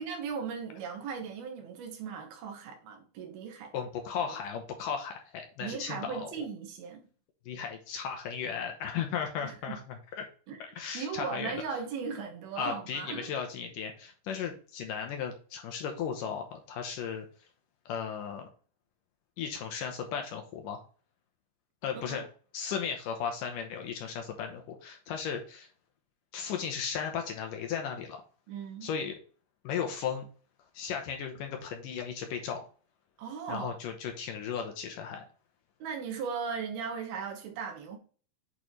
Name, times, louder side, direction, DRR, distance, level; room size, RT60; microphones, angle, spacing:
voice 1, 0.0-3.7 5.6-7.0 9.4-9.8 10.5-10.6 10.9-13.3 21.9-22.2 28.5-28.9 33.2-33.7 35.8-38.0, right 6 dB, 80° right, 3.3 m, -37 dB
voice 2, 3.7-6.5 7.5-10.3 10.6-11.5 12.6-17.3 17.9-18.5 19.4-20.8 21.8-22.3 22.5-25.7 26.3-28.2 28.8-29.2 29.6-30.3 30.7-32.6 33.5-35.2, left 7 dB, 70° left, 2.2 m, -36 dB
8.7 x 4.9 x 3.2 m
omnidirectional pair, 4.5 m